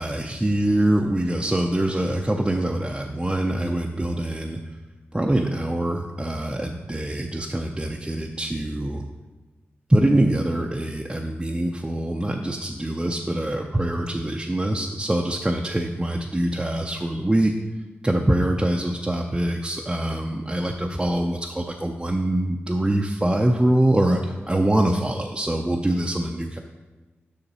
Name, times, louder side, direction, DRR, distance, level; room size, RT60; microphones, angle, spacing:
voice 1, 0.0-4.6 5.1-9.0 9.9-17.6 18.0-26.6, right 1 dB, 20° right, 0 dB, 0.6 m, -24 dB
6.8 x 5.7 x 4.2 m, 1.2 s
cardioid pair, 50°, 5 cm